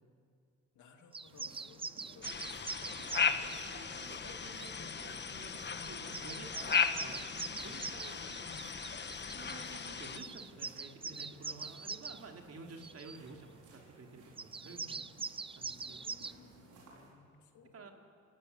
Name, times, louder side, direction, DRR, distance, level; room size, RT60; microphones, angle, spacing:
voice 1, 0.8-2.7 7.4-7.6 15.9-17.9, left 4 dB, 75° left, 5 dB, 2.5 m, -61 dB
sound 1, 1.1-3.6 4.4-4.7 5.6-5.7 5.8-12.2 12.8-13.2 14.4-16.3, right 4 dB, 20° right, 0.6 m, -43 dB
sound 2, 1.2-17.1, right 3 dB, 85° right, 5.5 m, -59 dB
sound 3, 2.2-10.2, left 5 dB, 35° left, 1.4 m, -36 dB
voice 2, 3.6-7.2 7.6-8.5 9.2-15.1 15.6-16.0 17.7-17.9, right 3 dB, 50° right, 3 dB, 3.2 m, -52 dB
27.5 x 15.0 x 9.6 m, 2.4 s
cardioid pair, 90°, 30 cm